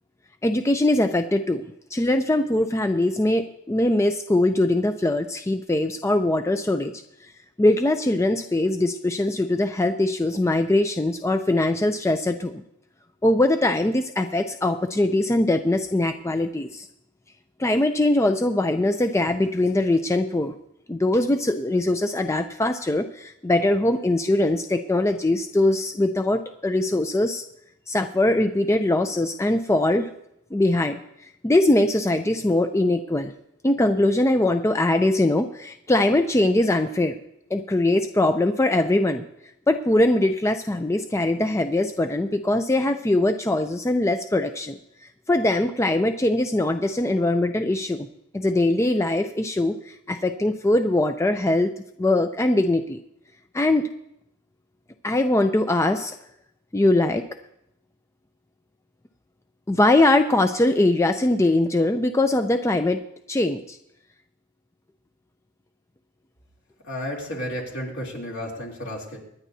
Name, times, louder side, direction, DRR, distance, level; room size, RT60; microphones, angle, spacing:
voice 1, 0.4-1.6 1.9-7.0 7.6-12.6 13.2-16.9 17.6-20.5 20.9-27.4 27.9-30.1 30.5-31.0 31.4-33.3 33.6-37.1 37.5-39.3 39.7-44.8 45.3-48.1 48.3-51.7 52.0-53.0 53.5-53.9 55.0-56.1 56.7-57.2 59.7-63.0 63.3-63.8, left 1 dB, 15° left, 7 dB, 0.4 m, -22 dB
voice 2, 66.8-69.2, equal, 65° left, -2 dB, 3.2 m, -32 dB
25.0 x 10.0 x 2.7 m, 0.79 s
head